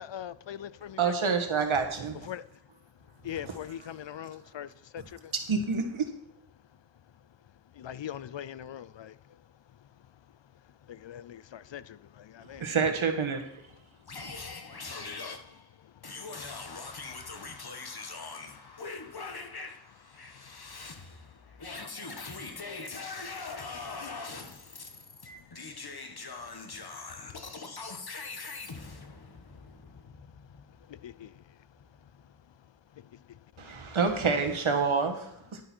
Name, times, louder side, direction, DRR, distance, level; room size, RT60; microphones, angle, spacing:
voice 1, 0.0-1.3 2.3-2.4 3.2-4.7 4.9-5.0 7.8-9.1 11.0-11.8 12.3-12.6 31.0-31.3, left 10 dB, 65° left, 0.5 m, -40 dB
voice 2, 1.0-2.2 3.5-3.6 5.3-6.1 12.6-13.4 33.6-35.6, right 5 dB, 90° right, 1.5 m, -28 dB
voice 3, 14.0-30.7, left 4 dB, 50° left, 1.5 m, -42 dB
11.0 x 8.8 x 4.4 m
wide cardioid pair, 80°, 47 cm